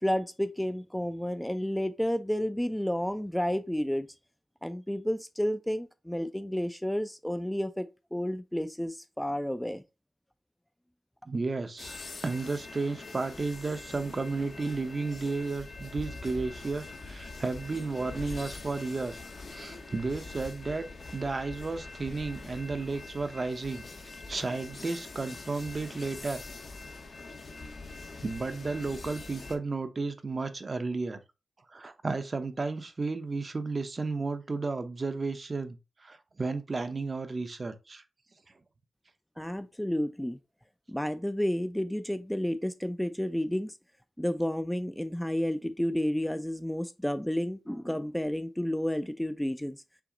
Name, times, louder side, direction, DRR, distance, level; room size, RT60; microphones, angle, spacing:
voice 1, 0.0-4.1 4.6-7.9 8.1-9.8 39.4-40.4 40.9-43.7 44.2-49.8, equal, 5° left, 0.3 m, -31 dB
voice 2, 11.3-12.0 12.2-23.8 24.3-26.4 28.2-31.2 31.7-35.8 36.0-38.0, right 3 dB, 40° right, 0.6 m, -33 dB
sound 1, 11.8-29.6, left 3 dB, 60° left, 0.8 m, -44 dB
5.8 x 2.0 x 3.8 m
cardioid pair, 80°, 0 cm